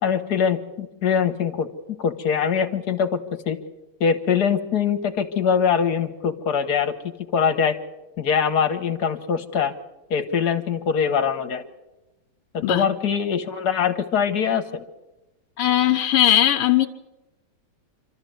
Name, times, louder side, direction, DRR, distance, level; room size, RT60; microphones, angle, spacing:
voice 1, 0.0-1.7 2.0-3.2 3.5-3.6 4.0-6.9 7.3-7.7 8.2-9.7 10.1-11.6 12.5-14.8, left 7 dB, 50° left, 8 dB, 1.6 m, -22 dB
voice 2, 15.6-16.9, left 12 dB, 90° left, 2 dB, 1.8 m, -18 dB
26.5 x 13.5 x 7.8 m, 1.1 s
omnidirectional pair, 2.4 m